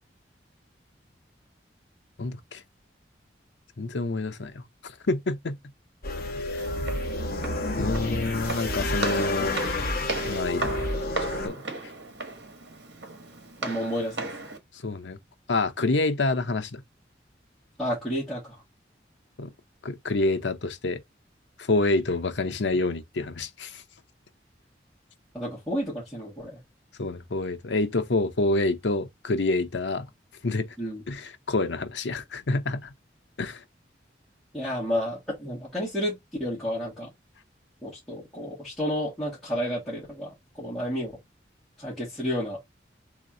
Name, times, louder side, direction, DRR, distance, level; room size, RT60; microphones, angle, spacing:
voice 1, 2.2-2.6 3.8-5.6 6.5-6.7 7.8-9.6 10.3-10.8 11.2-11.9 14.8-15.2 15.5-16.8 19.4-19.5 19.8-21.0 21.6-23.8 27.0-30.1 30.4-30.7 31.1-32.9 33.4-33.6, left 2 dB, 80° left, 0.8 m, -27 dB
sound 1, 6.0-11.5, left 2 dB, 55° left, 1.1 m, -29 dB
Walk footsteps, 6.6-14.6, right 3 dB, 65° right, 1.4 m, -36 dB
voice 2, 13.6-14.3 17.8-18.6 25.3-26.6 30.8-31.0 34.5-37.1 37.8-41.1 41.8-42.6, equal, ahead, 2.3 m, -31 dB
4.1 x 3.1 x 3.8 m
head